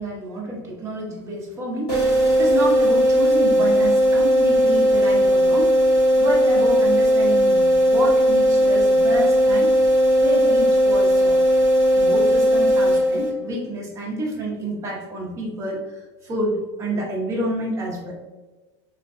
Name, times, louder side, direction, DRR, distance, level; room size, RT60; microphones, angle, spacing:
voice 1, 0.0-2.0 2.3-5.8 6.2-9.7 10.2-11.6 12.0-15.9 16.2-18.1, right 1 dB, 20° right, -3 dB, 0.7 m, -28 dB
sound 1, 1.9-13.6, equal, 30° left, 1.3 m, -17 dB
3.5 x 2.1 x 2.4 m, 1.2 s
supercardioid pair, 165°, 16 cm